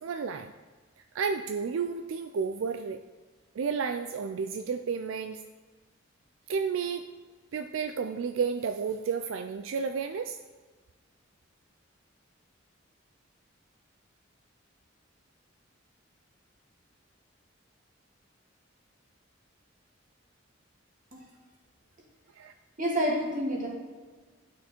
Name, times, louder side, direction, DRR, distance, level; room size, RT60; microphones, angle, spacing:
voice 1, 0.0-0.5 1.1-3.0 3.6-5.4 6.5-7.1 7.5-10.4 22.4-22.5, right 5 dB, 80° right, 7 dB, 0.4 m, -31 dB
voice 2, 22.8-23.7, equal, 40° right, -3 dB, 2.2 m, -28 dB
11.5 x 5.9 x 4.4 m, 1.4 s
head